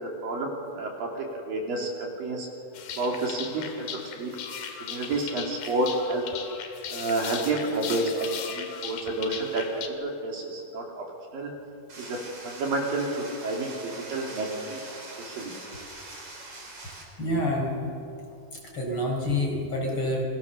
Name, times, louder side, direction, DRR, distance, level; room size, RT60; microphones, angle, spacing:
voice 1, 0.0-2.5 3.0-3.9 4.1-4.3 4.8-6.2 6.9-11.0 11.3-11.5 12.0-12.2 12.4-14.8 15.2-15.5, right 2 dB, 65° right, 0 dB, 4.7 m, -30 dB
sound 1, 2.7-9.9, left 7 dB, 75° left, 3.7 m, -38 dB
sound 2, 11.9-17.0, right 2 dB, 50° right, 6.1 m, -43 dB
voice 2, 17.2-17.9 18.5-20.2, left 1 dB, 35° left, -1 dB, 5.6 m, -28 dB
29.5 x 23.5 x 6.9 m, 2.7 s
omnidirectional pair, 4.4 m